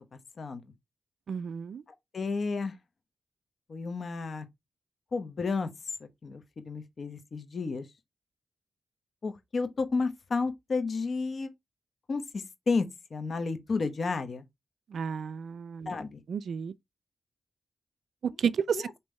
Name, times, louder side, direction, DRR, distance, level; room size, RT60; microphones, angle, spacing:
voice 1, 1.3-1.8 14.9-15.9 16.3-16.7 18.4-18.8, right 6 dB, 80° right, 0.3 m, -31 dB
voice 2, 2.1-2.7 3.7-4.5 5.1-5.7 6.2-7.8 9.2-11.5 12.1-14.4 15.9-16.2 18.7-18.9, left 4 dB, 55° left, 0.9 m, -32 dB
5.3 x 3.0 x 3.2 m
cardioid pair, 85°, 0 cm